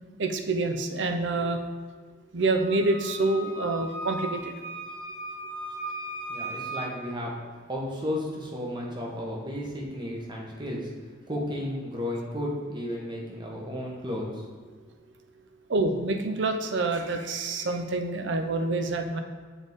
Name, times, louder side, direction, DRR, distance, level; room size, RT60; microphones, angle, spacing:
voice 1, 0.2-1.6 2.3-4.5 15.7-19.2, right 2 dB, 60° right, 6 dB, 0.5 m, -27 dB
Wind instrument woodwind instrument, 2.6-6.9, right 1 dB, 85° right, 1.3 m, -37 dB
voice 2, 6.3-7.4 7.7-10.9 11.3-14.4, left 1 dB, 20° right, -2 dB, 1.0 m, -33 dB
7.1 x 4.0 x 3.6 m, 1.5 s
head